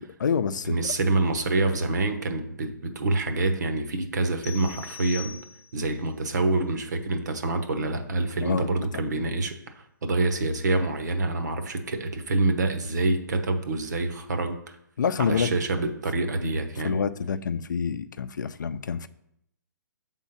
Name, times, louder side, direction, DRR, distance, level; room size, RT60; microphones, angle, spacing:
voice 1, 0.0-0.7 8.4-8.9 15.0-15.5 16.8-19.1, left 6 dB, 70° left, 12 dB, 0.5 m, -27 dB
voice 2, 0.7-5.4 5.7-14.6 15.2-17.0, right 2 dB, 60° right, 7 dB, 1.0 m, -26 dB
sound 1, 4.4-6.0, left 7 dB, 40° left, 1.0 m, -41 dB
7.2 x 3.7 x 5.7 m, 0.76 s
hypercardioid pair, 175°, 11 cm